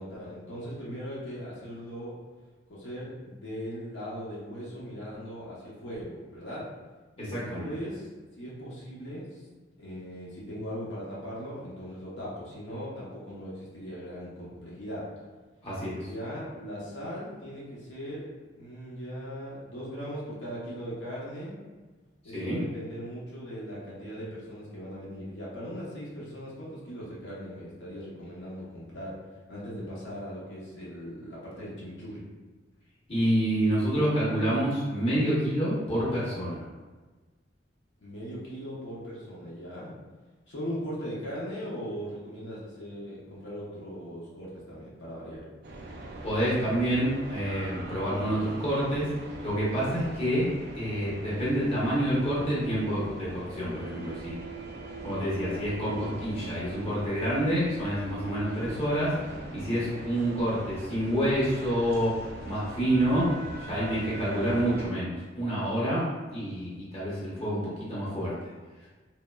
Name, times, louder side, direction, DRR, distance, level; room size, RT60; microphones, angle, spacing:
voice 1, 0.0-2.1 2.7-6.7 7.2-8.1 8.4-9.4 9.8-15.1 16.0-18.3 18.5-21.6 22.2-29.2 29.5-32.2 38.0-40.0 40.5-45.4, equal, 80° left, -7 dB, 0.7 m, -39 dB
voice 2, 7.3-7.7 15.6-16.0 22.3-22.6 33.1-36.6 46.2-49.1 49.4-50.5 50.7-54.4 55.0-59.1 59.5-63.3 63.6-66.1 66.3-68.3, equal, 35° left, -8 dB, 0.8 m, -28 dB
sound 1, 45.6-64.9, right 2 dB, 60° right, 0.4 m, -42 dB
3.0 x 2.0 x 2.2 m, 1.3 s
head